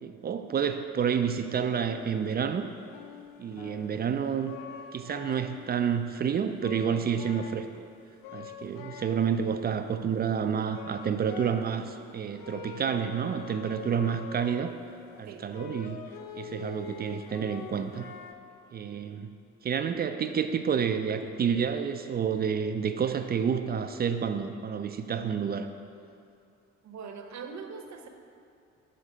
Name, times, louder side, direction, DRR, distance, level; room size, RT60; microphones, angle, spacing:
voice 1, 0.0-2.7 3.4-4.5 4.9-7.9 8.3-14.7 15.2-16.1 16.4-18.1 18.7-19.3 19.6-25.7, right 7 dB, 25° right, 8 dB, 0.4 m, -29 dB
sound 1, 1.9-2.4 2.9-4.1 4.5-5.8 6.1-6.3 6.6-7.8 8.2-9.5 9.8-9.9 10.3-10.5 10.7-11.9 12.3-18.3, left 8 dB, 60° left, 0.6 m, -45 dB
voice 2, 26.8-28.1, right 5 dB, 45° right, 5 dB, 0.8 m, -42 dB
6.3 x 4.2 x 5.5 m, 2.5 s
hypercardioid pair, 45°, 38 cm